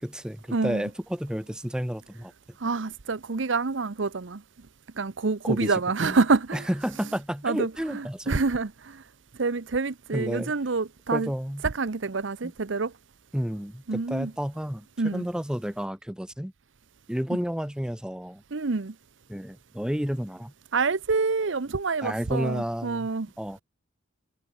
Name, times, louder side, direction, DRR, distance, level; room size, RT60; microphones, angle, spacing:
voice 1, 0.0-2.3 5.4-6.2 6.5-8.4 10.1-10.5 11.1-11.6 12.4-12.5 13.3-16.5 17.1-18.4 19.3-20.5 22.0-23.1 23.4-23.6, equal, 5° right, 0.8 m, -31 dB
voice 2, 0.5-0.9 2.6-4.4 4.9-6.7 7.4-9.0 9.3-11.3 11.6-12.9 13.9-14.3 15.0-15.3 17.3-17.4 18.5-19.0 20.7-23.3, right 4 dB, 65° right, 0.8 m, -27 dB
head